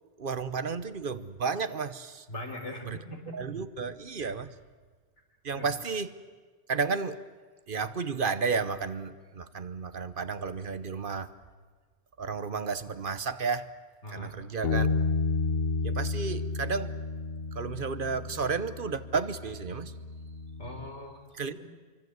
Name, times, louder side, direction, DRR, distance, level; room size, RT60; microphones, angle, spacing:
voice 1, 0.2-2.2 2.9-3.0 3.3-4.5 5.4-6.1 6.7-7.2 7.7-11.3 12.2-13.7 14.1-14.9 15.8-16.9 17.6-19.9 21.4-21.7, right 5 dB, 50° right, 13 dB, 1.0 m, -32 dB
voice 2, 2.3-3.4 5.6-5.7 14.0-14.3 20.6-21.2 21.5-21.6, left 1 dB, 90° left, 3 dB, 4.2 m, -40 dB
Bass guitar, 14.6-20.9, left 3 dB, 60° left, 1.3 m, -32 dB
26.0 x 24.0 x 8.1 m, 1.5 s
omnidirectional pair, 1.1 m